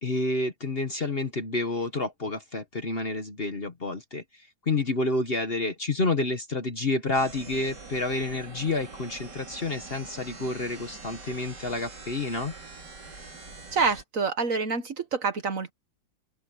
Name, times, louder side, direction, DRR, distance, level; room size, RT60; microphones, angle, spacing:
voice 1, 0.0-4.2 4.7-12.5, left 2 dB, 35° left, 1.4 m, -29 dB
sound 1, 7.1-14.0, right 3 dB, 65° right, 4.0 m, -44 dB
voice 2, 13.7-15.7, right 4 dB, 50° right, 1.6 m, -27 dB
open air
omnidirectional pair, 2.0 m